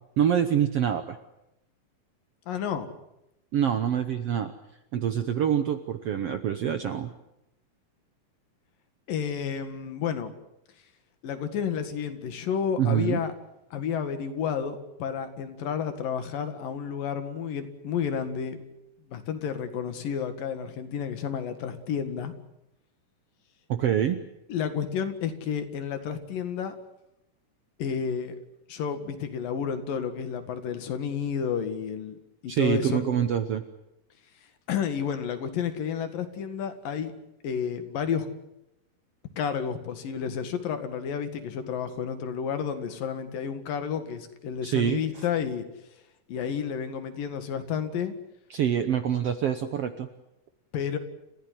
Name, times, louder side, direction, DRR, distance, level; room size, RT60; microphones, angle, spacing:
voice 1, 0.2-1.2 3.5-4.5 4.9-7.1 12.8-13.2 23.7-24.2 32.5-33.6 44.6-45.0 48.5-50.1, right 9 dB, 65° right, 9 dB, 1.5 m, -25 dB
voice 2, 2.5-2.9 9.1-10.3 11.2-13.3 13.7-18.6 19.1-22.3 24.5-26.8 27.8-28.4 28.7-32.2 32.4-33.0 34.7-37.1 37.4-38.3 39.4-45.6 46.3-48.2 50.7-51.0, left 7 dB, 75° left, 9 dB, 3.6 m, -31 dB
29.5 x 15.5 x 9.5 m, 0.88 s
omnidirectional pair, 4.0 m